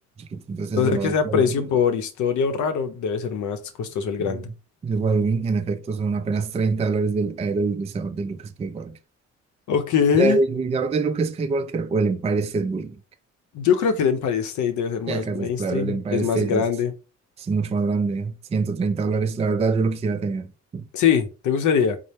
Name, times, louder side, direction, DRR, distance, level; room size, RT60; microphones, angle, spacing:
voice 1, 0.2-1.7 4.2-4.4 4.8-9.0 10.1-13.0 15.1-16.6 17.4-20.9, right 4 dB, 20° right, 0.3 m, -25 dB
voice 2, 0.7-4.5 9.7-10.4 13.5-16.9 20.9-22.0, left 7 dB, 75° left, 0.6 m, -22 dB
3.3 x 2.0 x 4.1 m
cardioid pair, 90°, 30 cm